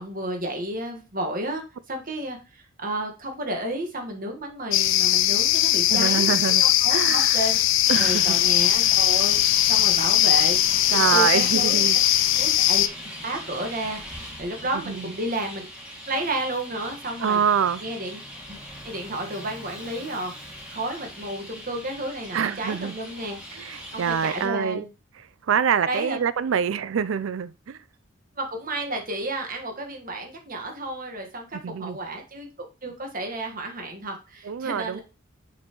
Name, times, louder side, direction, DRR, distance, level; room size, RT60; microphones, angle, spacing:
voice 1, 0.0-7.6 8.0-10.6 10.9-11.9 12.3-12.8 13.2-15.6 16.1-17.4 17.8-18.2 18.5-18.6 18.8-23.4 23.9-24.9 25.9-26.2 28.4-35.0, right 1 dB, 40° right, 1.4 m, -32 dB
sound 1, 4.7-12.9, left 13 dB, 65° left, 0.4 m, -20 dB
voice 2, 5.9-6.6 6.9-7.4 7.9-8.5 10.9-12.0 14.9-15.1 17.2-17.8 22.3-23.0 23.5-24.9 25.5-27.8 31.6-32.0 34.4-35.0, right 7 dB, 70° right, 0.4 m, -25 dB
Traffic noise roadway noise, 7.8-24.5, equal, 5° right, 2.2 m, -40 dB
6.7 x 5.4 x 3.0 m
head